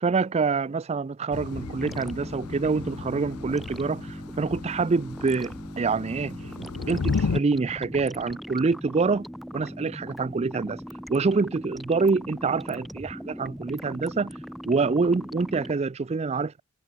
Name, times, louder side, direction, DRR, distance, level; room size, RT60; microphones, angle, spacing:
voice 1, 0.0-9.3 9.5-10.8 11.1-14.4 14.7-16.6, right 4 dB, 30° right, 0.4 m, -26 dB
Thunder / Rain, 1.3-7.4, left 4 dB, 85° left, 0.6 m, -34 dB
sound 1, 1.6-15.7, equal, ahead, 2.7 m, -40 dB
head